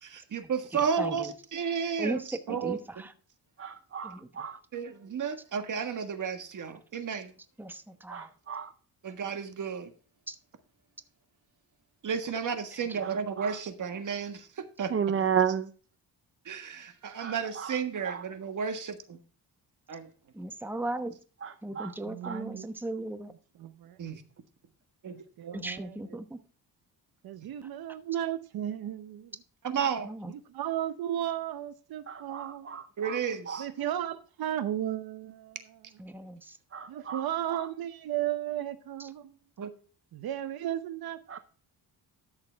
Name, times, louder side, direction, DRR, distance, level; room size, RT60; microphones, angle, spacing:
voice 1, 0.0-2.2 2.5-2.8 4.7-7.3 9.0-9.9 12.0-14.9 16.4-19.2 19.9-20.1 24.0-24.2 25.0-25.2 27.4-27.5 29.6-30.1 33.0-33.7 39.6-39.7, right 6 dB, 50° right, 1.6 m, -32 dB
voice 2, 0.7-1.3 2.0-3.1 4.0-4.5 7.6-8.3 10.3-10.4 12.7-13.0 20.3-21.2 21.6-23.3 25.5-26.4 30.0-30.3 36.0-36.6 39.0-39.1, right 1 dB, 5° right, 1.0 m, -37 dB
voice 3, 3.6-4.6 8.1-8.7 13.0-13.6 14.9-15.7 17.2-17.8 18.0-18.2 21.4-21.9 22.2-22.4 32.1-33.2 33.5-33.6 36.7-37.7 41.3-41.4, right 8 dB, 35° right, 0.6 m, -33 dB
voice 4, 22.0-22.7 25.4-26.0 27.2-29.3 30.5-32.8 33.6-35.8 36.9-39.3 40.1-41.4, right 11 dB, 70° right, 0.8 m, -34 dB
13.0 x 6.6 x 3.4 m
cardioid pair, 105°, 38 cm